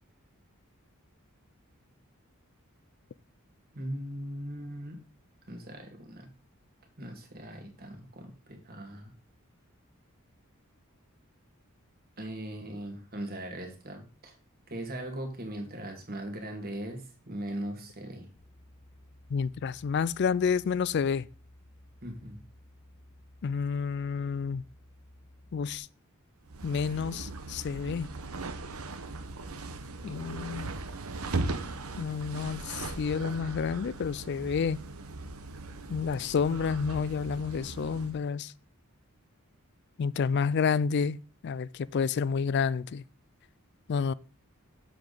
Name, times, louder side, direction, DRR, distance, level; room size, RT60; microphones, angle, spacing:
voice 1, 3.7-5.0 5.5-6.3 7.0-9.1 12.2-14.4 14.7-18.3 22.0-22.4 30.0-30.1, right 1 dB, 45° right, 2.0 m, -39 dB
sound 1, 18.4-25.8, left 1 dB, 70° left, 1.0 m, -56 dB
voice 2, 19.3-21.3 23.4-24.6 25.5-25.9 26.6-28.1 30.0-30.7 32.0-34.8 35.9-38.5 40.0-43.0 43.9-44.1, left 6 dB, 50° left, 0.3 m, -29 dB
sound 2, 26.4-38.2, right 2 dB, 80° right, 0.9 m, -38 dB
7.6 x 7.0 x 4.0 m
head